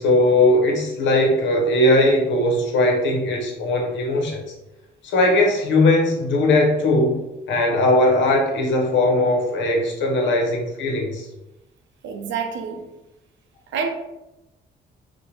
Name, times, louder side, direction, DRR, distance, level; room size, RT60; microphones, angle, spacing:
voice 1, 0.0-4.4 5.0-7.1 7.5-11.3, left 1 dB, 70° left, 0.7 m, -19 dB
voice 2, 12.0-12.9 13.7-13.9, right 6 dB, 70° right, 0.5 m, -27 dB
2.5 x 2.1 x 2.9 m
cardioid pair, 90°, 20 cm